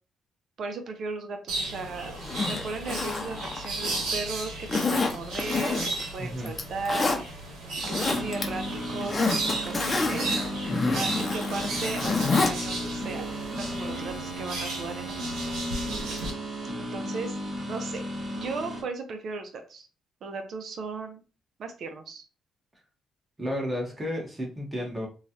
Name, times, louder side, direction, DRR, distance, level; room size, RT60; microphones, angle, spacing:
voice 1, 0.6-2.2 2.5-7.2 7.9-10.4 10.9-13.3 13.5-15.1 16.8-17.4 17.7-18.0 18.3-19.9 20.2-21.2 21.6-22.2, right 4 dB, 60° right, 6 dB, 0.6 m, -36 dB
sound 1, 1.5-16.3, right 2 dB, 85° right, 1.0 m, -35 dB
Zipper (clothing), 2.2-4.1 4.7-6.1 6.5-7.2 7.7-8.4 8.8-12.5 12.9-13.0, left 3 dB, 30° left, 0.7 m, -28 dB
voice 2, 6.2-6.5 10.7-11.0 23.4-25.1, equal, 15° right, 0 dB, 1.3 m, -32 dB
sound 2, 8.1-18.8, equal, 45° right, 1.5 m, -35 dB
3.1 x 2.4 x 2.7 m, 0.33 s
cardioid pair, 90°, 0 cm